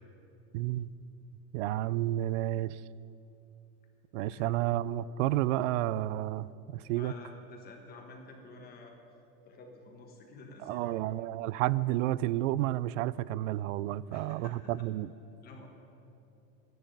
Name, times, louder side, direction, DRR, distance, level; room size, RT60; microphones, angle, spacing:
voice 1, 0.5-0.9 1.5-2.8 4.1-7.1 10.6-15.1, right 14 dB, 65° right, 0.5 m, -31 dB
voice 2, 6.9-8.9 9.4-11.1 14.1-14.9 15.4-15.7, left 3 dB, 25° left, 1.5 m, -50 dB
12.0 x 11.0 x 9.1 m
supercardioid pair, 175°, 41 cm